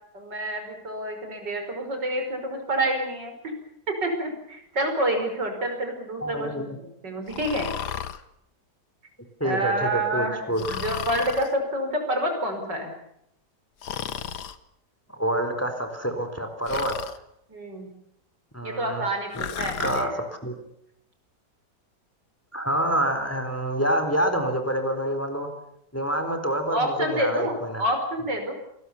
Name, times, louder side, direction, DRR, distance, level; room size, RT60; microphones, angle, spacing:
voice 1, 0.1-3.5 4.0-7.7 9.4-12.9 17.5-17.9 18.6-20.2 26.7-28.5, right 1 dB, 90° right, 5 dB, 6.1 m, -28 dB
voice 2, 6.2-6.7 9.4-10.8 15.1-17.0 18.5-19.0 19.8-20.5 22.5-25.5 25.9-27.8, right 1 dB, 10° left, 6 dB, 3.8 m, -27 dB
Breathing, 7.3-8.2 10.6-11.5 13.8-14.6 16.7-17.2 19.3-20.1, left 8 dB, 70° left, 1.7 m, -33 dB
28.0 x 20.5 x 7.1 m, 0.77 s
omnidirectional pair, 1.8 m